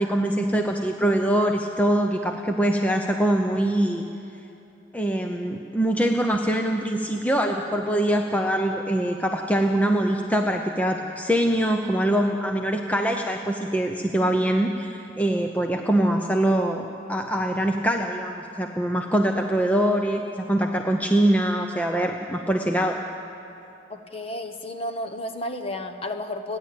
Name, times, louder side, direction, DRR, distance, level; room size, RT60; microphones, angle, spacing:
voice 1, 0.0-4.0 4.9-23.0, right 1 dB, 10° left, 3 dB, 0.7 m, -23 dB
voice 2, 23.9-26.6, left 1 dB, 30° left, 6 dB, 1.1 m, -32 dB
29.5 x 10.5 x 8.5 m, 2.9 s
head